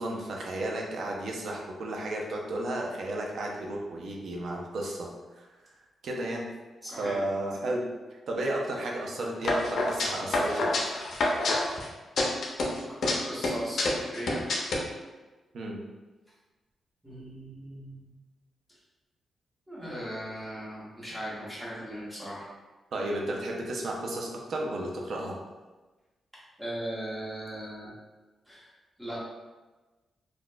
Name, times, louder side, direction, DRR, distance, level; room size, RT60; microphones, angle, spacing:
voice 1, 0.0-5.1 5.4-5.5 6.0-6.5 6.9-7.8 8.1-10.7 15.5-15.8 22.9-25.4, right 1 dB, 70° right, 0 dB, 0.5 m, -33 dB
voice 2, 6.8-7.2 13.0-14.5 17.0-18.1 19.7-22.5 26.6-27.9 28.5-28.7 29.0-29.2, equal, 5° right, -8 dB, 1.2 m, -38 dB
sound 1, 9.4-11.9 12.2-13.1 13.4-14.8, left 2 dB, 65° left, 0.5 m, -27 dB
3.7 x 2.3 x 2.2 m, 1.2 s
cardioid pair, 95°, 0 cm